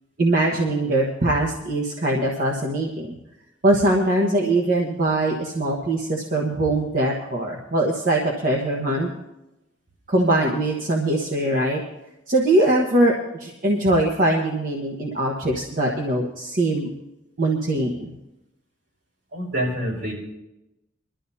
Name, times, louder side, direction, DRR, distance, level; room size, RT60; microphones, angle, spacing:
voice 1, 0.2-3.2 3.6-9.1 10.1-11.8 12.3-16.9 17.4-18.1, right 1 dB, 45° right, -1 dB, 1.3 m, -22 dB
voice 2, 19.3-20.1, equal, 70° right, -4 dB, 6.1 m, -26 dB
22.5 x 12.5 x 2.8 m, 0.93 s
head